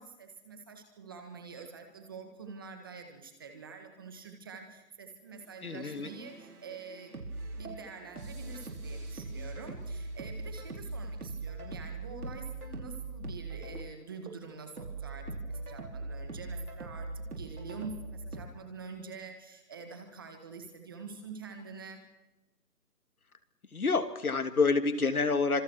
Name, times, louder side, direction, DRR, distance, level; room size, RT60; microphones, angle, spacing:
voice 1, 0.0-7.1 7.6-22.0, right 4 dB, 15° right, 5 dB, 1.7 m, -46 dB
voice 2, 5.6-6.1 23.7-25.6, left 4 dB, 65° left, 9 dB, 2.9 m, -28 dB
sound 1, 5.7-18.4, right 2 dB, 70° right, 5.8 m, -41 dB
29.0 x 26.5 x 4.7 m, 0.96 s
hypercardioid pair, 170°, 47 cm